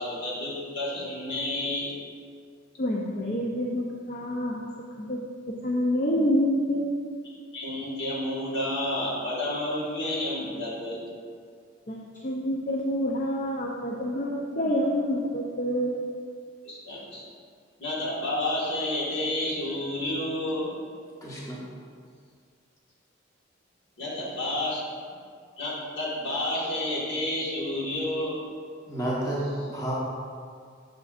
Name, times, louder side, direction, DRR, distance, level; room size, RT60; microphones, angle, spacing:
voice 1, 0.0-2.0 7.5-11.1 16.7-17.2 17.8-20.8 24.0-24.8 25.6-28.4, left 1 dB, 60° left, -6 dB, 1.6 m, -30 dB
voice 2, 2.8-4.7 5.0-5.2 5.6-6.9 11.9-12.0 12.2-15.9, equal, 40° left, -2 dB, 0.5 m, -27 dB
voice 3, 21.2-21.7 28.8-29.9, right 1 dB, 15° left, -6 dB, 1.1 m, -30 dB
6.8 x 6.4 x 2.4 m, 2.1 s
head